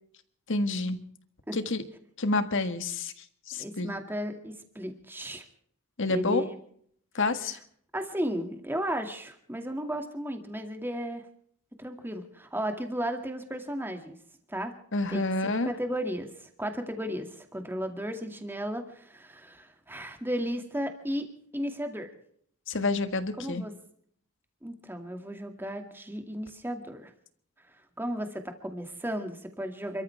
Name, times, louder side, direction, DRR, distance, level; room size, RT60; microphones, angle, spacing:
voice 1, 0.5-1.0 1.5-1.8 2.2-3.1 3.5-3.9 6.0-6.4 7.1-7.6 14.9-15.7 22.7-23.6, left 3 dB, 60° left, 9 dB, 1.6 m, -28 dB
voice 2, 3.6-5.4 6.1-6.5 7.9-11.2 11.8-14.2 14.5-14.7 15.1-21.3 21.5-22.1 23.4-23.7 24.6-27.1 28.0-30.0, equal, 10° right, 5 dB, 2.2 m, -34 dB
29.5 x 13.5 x 3.5 m, 0.62 s
head